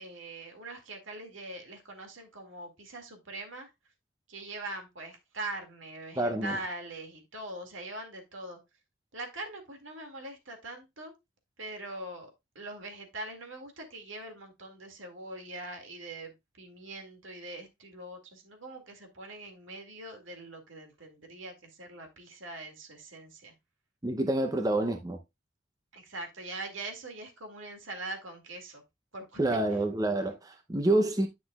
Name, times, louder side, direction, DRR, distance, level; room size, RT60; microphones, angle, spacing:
voice 1, 0.0-3.7 4.3-8.6 9.1-11.1 11.6-12.3 12.6-23.5 25.9-28.8 29.1-29.8, right 2 dB, 85° right, 2.2 m, -42 dB
voice 2, 6.2-6.6 24.0-25.2 29.4-31.3, right 2 dB, 20° right, 0.6 m, -27 dB
10.0 x 6.0 x 2.3 m
head